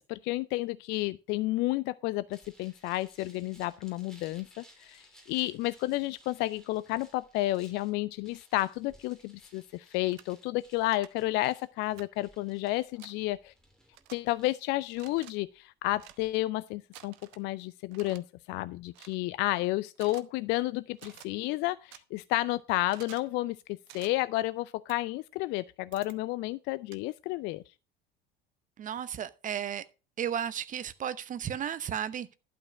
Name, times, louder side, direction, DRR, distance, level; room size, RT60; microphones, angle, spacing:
voice 1, 0.0-13.5 14.1-23.6 23.9-27.6, left 18 dB, 40° left, 0.4 m, -31 dB
sound 1, 2.3-16.3, equal, ahead, 3.2 m, -61 dB
sound 2, 10.1-10.2 10.9-11.1 12.0-12.1 13.0-13.1 13.9-14.2 14.9-15.3 16.0-16.2 16.9-17.4 17.9-18.2 18.9-19.2 19.9-20.2 20.9-21.3 21.9-22.0 22.9-23.3 23.9-24.1 24.9-25.0 25.9-26.2 26.9-27.0, right 14 dB, 50° right, 0.9 m, -51 dB
voice 2, 28.8-29.8 30.2-32.3, right 9 dB, 25° right, 0.8 m, -34 dB
11.5 x 5.2 x 6.2 m
figure-of-eight pair, 70°, 29 cm